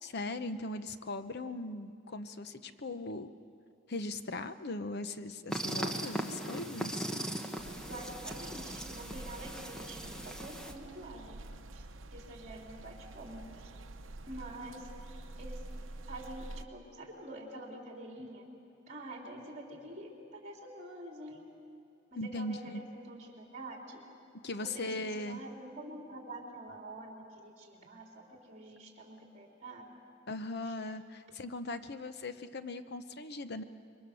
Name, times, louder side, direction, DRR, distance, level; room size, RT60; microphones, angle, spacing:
voice 1, 0.0-3.3 3.9-7.1 22.2-22.8 24.4-25.4 30.3-33.6, left 2 dB, 55° left, 10 dB, 0.9 m, -39 dB
sound 1, 5.5-10.7, right 1 dB, 5° left, 1.4 m, -39 dB
sound 2, 7.6-16.6, right 2 dB, 75° right, 0.9 m, -48 dB
voice 2, 7.8-11.4 11.7-11.9 12.1-13.7 14.3-14.9 15.4-15.6 16.1-18.4 18.9-21.5 22.1-24.0 24.6-30.0 30.6-30.8, right 1 dB, 35° right, 0 dB, 4.0 m, -47 dB
27.0 x 23.5 x 7.0 m, 2.5 s
head